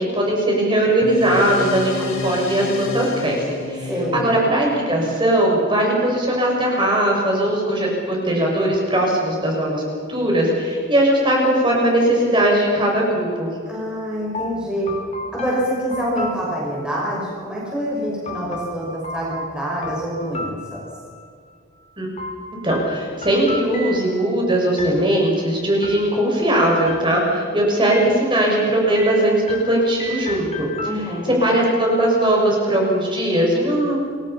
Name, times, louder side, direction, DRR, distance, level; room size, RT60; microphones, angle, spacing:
voice 1, 0.0-3.4 3.7-13.5 22.0-22.1 22.6-30.7 31.4-34.0, right 1 dB, 25° right, -2 dB, 6.7 m, -19 dB
sound 1, 1.0-5.8, left 3 dB, 80° left, 5.1 m, -31 dB
voice 2, 3.9-4.3 13.7-14.9 15.3-20.9 30.8-31.4, equal, 5° right, -5 dB, 6.0 m, -26 dB
sound 2, 14.3-17.1 18.3-21.3 22.2-24.4 24.8-25.4 25.8-26.5 26.9-27.5 27.9-28.6 29.0-31.4, left 2 dB, 30° left, 3.4 m, -34 dB
29.5 x 23.0 x 5.8 m, 2.1 s
head